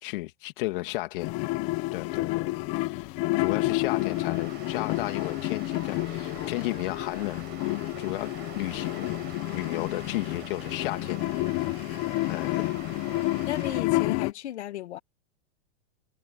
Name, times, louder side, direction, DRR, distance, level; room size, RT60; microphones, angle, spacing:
voice 1, 0.0-1.3 1.9-9.1 9.5-11.2 12.3-12.7, left 19 dB, 50° left, 2.3 m, -34 dB
sound 1, 1.2-14.3, left 20 dB, 20° left, 0.4 m, -30 dB
sound 2, 3.3-13.8, right 18 dB, 30° right, 5.3 m, -46 dB
voice 2, 13.4-15.0, left 12 dB, 75° left, 1.9 m, -34 dB
supercardioid pair, 160°, 34 cm